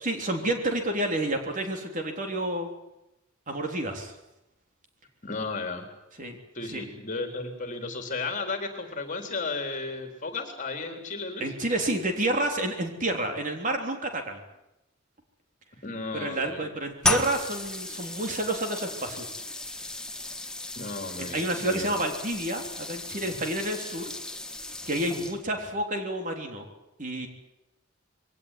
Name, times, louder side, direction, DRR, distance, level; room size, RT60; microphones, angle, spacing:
voice 1, 0.0-2.7 3.5-4.1 6.2-6.4 6.6-6.8 11.4-14.4 16.1-19.3 21.2-24.1 24.9-26.7 27.0-27.3, right 1 dB, 40° right, 4 dB, 3.6 m, -29 dB
voice 2, 5.2-5.9 6.5-11.5 15.8-16.6 20.8-22.0, left 3 dB, 40° left, 5 dB, 3.9 m, -34 dB
sound 1, 17.0-25.6, left 2 dB, 5° left, 1.6 m, -34 dB
22.5 x 18.0 x 9.9 m, 0.89 s
head